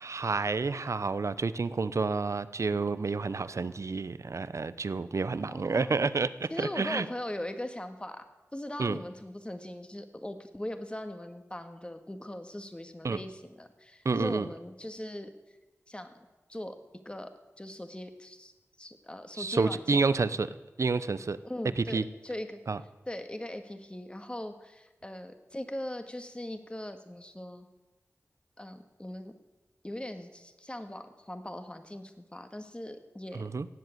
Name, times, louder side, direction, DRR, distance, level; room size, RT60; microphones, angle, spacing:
voice 1, 0.0-7.1 8.8-9.0 13.0-13.2 14.0-14.5 19.4-20.5 20.8-21.4 21.8-22.0 22.7-22.8 33.3-33.7, right 4 dB, 65° right, 15 dB, 0.7 m, -29 dB
voice 2, 5.5-6.0 6.5-15.3 15.9-16.1 16.5-16.8 17.1-18.5 18.8-20.0 21.4-22.6 23.1-27.7 28.6-29.3 29.8-33.5, left 1 dB, 20° left, 8 dB, 1.7 m, -40 dB
17.0 x 7.8 x 9.3 m, 1.1 s
wide cardioid pair, 50°, 5 cm